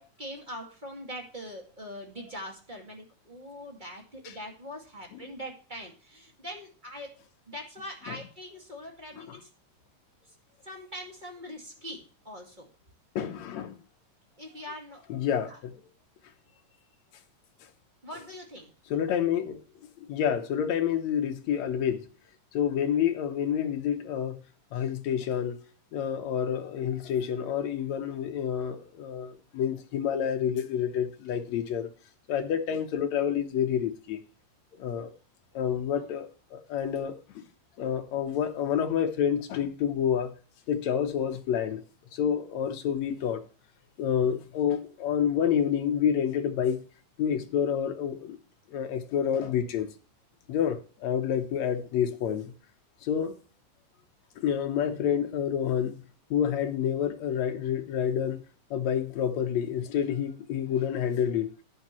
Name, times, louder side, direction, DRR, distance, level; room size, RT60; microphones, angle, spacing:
voice 1, 0.0-7.2 7.5-9.5 10.3-10.4 10.6-12.7 14.4-15.0 15.5-15.6 18.0-18.7 24.7-24.9 59.7-59.8, equal, 20° right, 1.3 m, -42 dB
voice 2, 13.2-13.8 15.1-15.7 18.9-19.6 20.0-22.1 22.5-24.4 24.7-25.6 25.9-31.9 32.3-34.2 34.8-35.1 35.5-37.4 37.8-40.3 40.7-41.8 42.1-43.4 44.0-46.8 47.2-48.4 48.7-49.9 50.5-52.5 53.0-53.4 54.4-56.0 56.3-58.4 58.7-61.6, left 8 dB, 65° left, 1.9 m, -28 dB
11.5 x 8.6 x 3.0 m
omnidirectional pair, 3.9 m